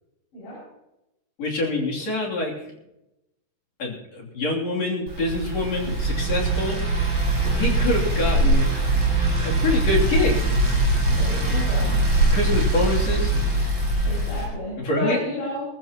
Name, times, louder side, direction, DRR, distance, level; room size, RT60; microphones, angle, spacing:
voice 1, 1.4-2.6 3.8-6.8 7.6-8.7 9.4-10.5 12.3-13.4 14.8-15.2, left 2 dB, 40° left, -3 dB, 3.8 m, -25 dB
sound 1, 5.1-14.5, right 2 dB, 30° right, 7.9 m, -22 dB
sound 2, 8.6-14.0, right 3 dB, 75° right, 1.8 m, -29 dB
voice 2, 11.1-12.0 14.0-15.7, equal, 80° left, -8 dB, 8.5 m, -31 dB
22.5 x 15.0 x 3.0 m, 0.91 s
omnidirectional pair, 4.9 m